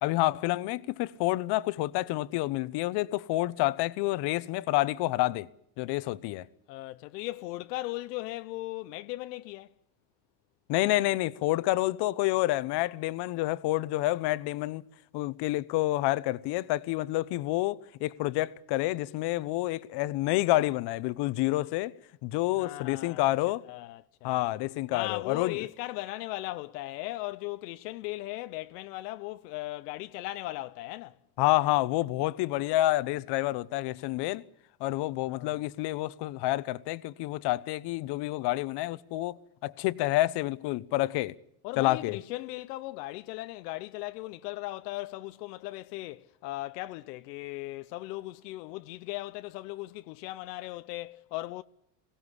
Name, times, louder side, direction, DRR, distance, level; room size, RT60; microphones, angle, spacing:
voice 1, 0.0-5.5 5.8-6.4 10.7-14.8 15.1-21.9 22.2-23.6 24.2-25.6 31.4-34.4 34.8-41.3 41.8-42.2, left 17 dB, 55° left, 1.0 m, -28 dB
voice 2, 6.7-9.7 22.5-23.3 23.7-24.5 24.9-31.2 35.2-35.6 41.6-51.6, left 18 dB, 85° left, 0.8 m, -38 dB
22.0 x 16.5 x 9.8 m
supercardioid pair, 110°, 47 cm